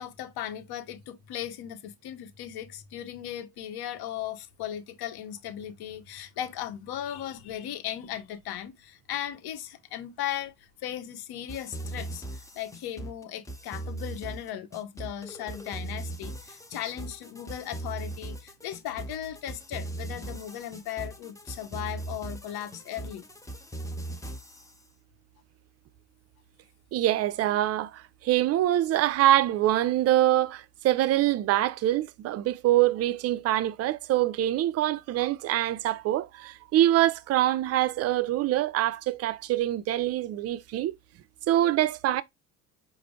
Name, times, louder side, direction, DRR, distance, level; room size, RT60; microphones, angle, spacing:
voice 1, 0.0-12.2 12.5-23.2, left 11 dB, 50° left, 1.1 m, -37 dB
sound 1, 11.5-24.7, right 2 dB, 5° left, 0.7 m, -39 dB
voice 2, 26.9-41.0 41.5-42.2, right 14 dB, 35° right, 0.5 m, -25 dB
4.9 x 2.1 x 4.8 m
hypercardioid pair, 70°, 48 cm